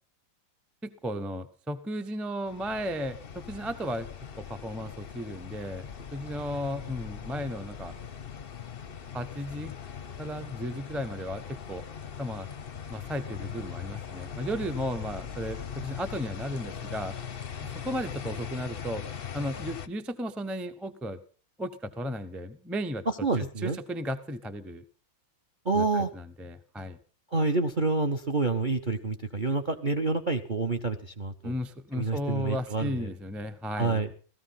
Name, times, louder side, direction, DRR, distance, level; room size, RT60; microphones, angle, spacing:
voice 1, 0.8-4.1 4.3-7.9 9.1-9.7 10.2-11.8 12.2-12.5 12.9-17.1 17.6-19.0 19.3-21.2 21.6-23.0 23.4-24.8 25.7-27.0 31.4-34.0, equal, ahead, 8 dB, 0.5 m, -35 dB
sound 1, 2.5-19.9, left 7 dB, 50° left, 0.6 m, -40 dB
voice 2, 23.1-23.8 25.6-26.1 27.3-31.5 31.9-33.1 33.8-34.1, right 3 dB, 40° right, 7 dB, 0.7 m, -28 dB
17.0 x 14.0 x 5.7 m, 0.40 s
omnidirectional pair, 2.1 m